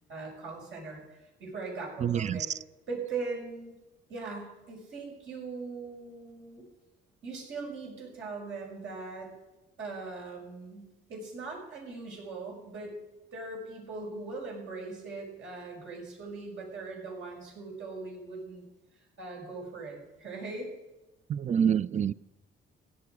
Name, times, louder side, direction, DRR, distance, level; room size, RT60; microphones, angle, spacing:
voice 1, 0.1-2.5 2.9-3.7 4.1-6.6 7.2-9.3 9.8-10.8 11.1-13.0 13.3-18.6 19.2-20.7, right 3 dB, 75° right, -2 dB, 6.4 m, -40 dB
voice 2, 2.0-2.6 21.3-22.1, right 8 dB, 35° right, 19 dB, 0.4 m, -27 dB
16.5 x 10.5 x 4.9 m, 1.0 s
cardioid pair, 90°, 20 cm